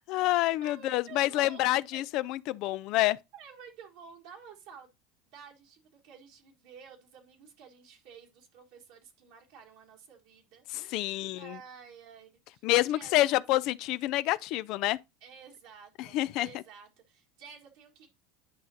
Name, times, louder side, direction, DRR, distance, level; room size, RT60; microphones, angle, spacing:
voice 1, 0.0-3.2 10.7-11.6 12.6-15.0 16.0-16.5, left 17 dB, 60° left, 0.4 m, -28 dB
voice 2, 0.6-1.7 1.9-2.3 3.3-4.9 5.3-13.4 15.2-18.1, right 7 dB, 70° right, 1.6 m, -51 dB
10.0 x 5.1 x 2.8 m
hypercardioid pair, 95°, 0 cm